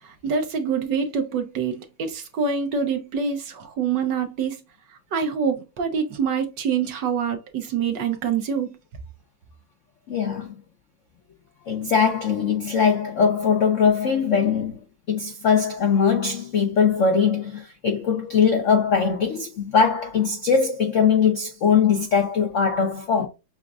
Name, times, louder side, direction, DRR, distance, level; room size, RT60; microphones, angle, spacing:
voice 1, 0.0-4.6 5.1-8.8, right 6 dB, 65° right, 1.3 m, -26 dB
voice 2, 10.1-10.5 11.7-14.8 15.1-23.3, left 6 dB, 75° left, 0.6 m, -21 dB
7.0 x 2.5 x 2.4 m
omnidirectional pair, 2.3 m